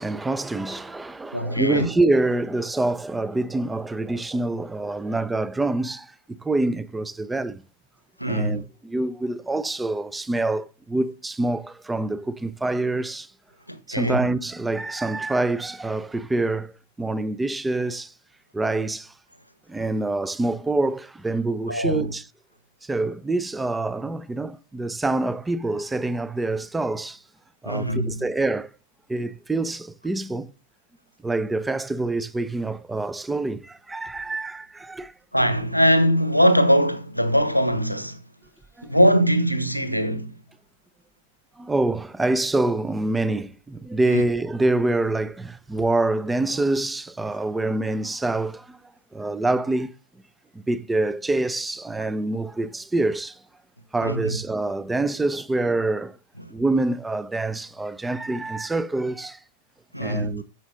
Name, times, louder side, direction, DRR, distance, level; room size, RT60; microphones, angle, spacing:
voice 1, 0.0-6.1 6.4-7.6 8.3-13.3 13.9-16.7 17.0-18.1 18.5-19.1 19.7-22.2 22.8-27.2 27.6-28.7 29.1-30.5 31.2-35.1 38.8-38.9 41.6-48.8 49.1-49.9 50.7-53.4 53.9-56.2 56.5-59.4 60.0-60.4, right 2 dB, 10° right, 0.8 m, -26 dB
voice 2, 1.3-1.9 8.2-8.6 13.7-14.2 21.7-22.1 27.6-28.2 35.3-38.2 38.8-40.4 44.1-44.3 54.0-54.4 59.9-60.4, equal, 90° left, 1.3 m, -21 dB
13.5 x 7.2 x 3.9 m
figure-of-eight pair, 90°, 0 cm